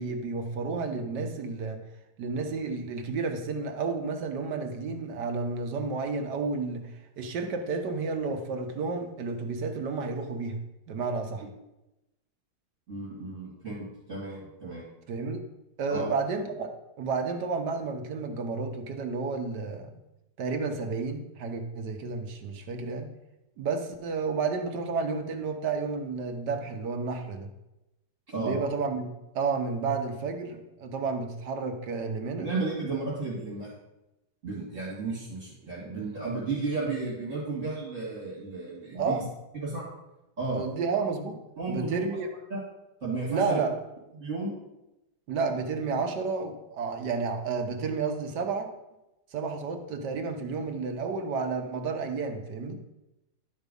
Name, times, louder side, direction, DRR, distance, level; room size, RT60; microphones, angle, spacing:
voice 1, 0.0-1.8 2.2-10.6 10.9-11.4 15.1-15.4 15.8-16.7 17.0-19.9 20.4-23.1 23.6-27.5 28.4-29.1 29.3-32.5 38.9-39.2 40.5-41.4 41.7-42.3 43.3-43.7 45.3-48.7 49.3-52.8, right 4 dB, 70° right, 5 dB, 1.5 m, -31 dB
voice 2, 12.9-14.9 15.9-16.1 28.3-28.6 32.4-33.7 34.4-39.2 39.5-39.9 40.4-40.6 41.6-42.0 42.5-42.6 43.0-43.6 44.1-44.6, right 3 dB, 40° right, -5 dB, 2.5 m, -33 dB
11.0 x 4.7 x 5.3 m, 0.94 s
omnidirectional pair, 1.9 m